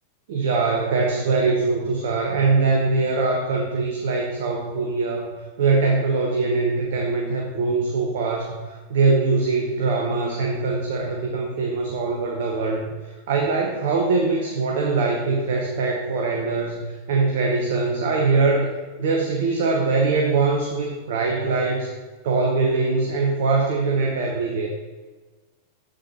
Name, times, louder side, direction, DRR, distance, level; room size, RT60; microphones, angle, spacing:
voice 1, 0.3-18.7 19.0-21.9 22.2-24.7, right 4 dB, 55° right, 1 dB, 1.1 m, -22 dB
7.8 x 7.8 x 4.2 m, 1.3 s
figure-of-eight pair, 90°, 0 cm